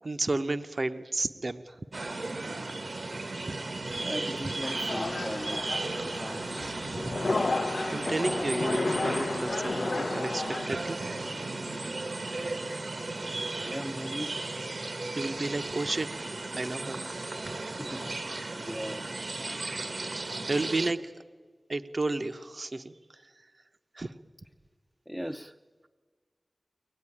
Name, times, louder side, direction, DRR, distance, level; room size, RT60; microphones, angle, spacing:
voice 1, 0.0-1.8 2.9-3.1 3.5-3.6 6.5-7.1 7.5-11.0 15.1-16.1 16.5-17.0 17.4-17.9 19.9-20.2 20.5-21.1 21.7-23.3 23.9-24.1, right 2 dB, 50° right, 0.9 m, -33 dB
sound 1, 1.9-20.9, right 2 dB, 70° right, 1.2 m, -35 dB
voice 2, 4.0-7.0 13.6-14.4 17.8-18.2 18.6-19.1 19.4-19.7 25.1-25.5, equal, ahead, 0.6 m, -39 dB
sound 2, 4.6-10.7, left 3 dB, 70° left, 0.6 m, -32 dB
23.5 x 19.0 x 9.8 m
wide cardioid pair, 65°, 0 cm